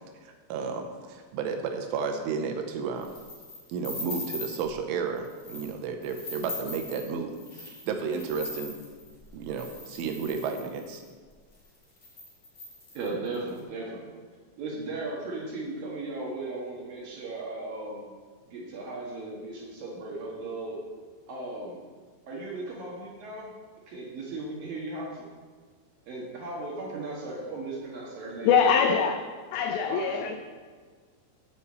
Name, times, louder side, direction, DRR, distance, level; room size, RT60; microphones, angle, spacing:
voice 1, 0.2-3.1 3.7-8.7 9.3-11.0, right 5 dB, 85° right, 5 dB, 3.1 m, -32 dB
sound 1, 3.0-4.7 5.2-5.7 6.0-11.1 11.6-11.7 12.0-13.5, left 2 dB, 25° left, 1.8 m, -41 dB
voice 2, 12.9-14.1 14.6-18.1 18.5-20.8 21.3-21.8 22.3-23.5 23.9-25.3 26.1-29.0 29.9-30.4, right 2 dB, 60° right, -3 dB, 2.5 m, -36 dB
voice 3, 28.4-29.2 29.5-30.4, left 7 dB, 90° left, 5 dB, 2.5 m, -23 dB
7.1 x 6.8 x 8.0 m, 1.5 s
omnidirectional pair, 5.8 m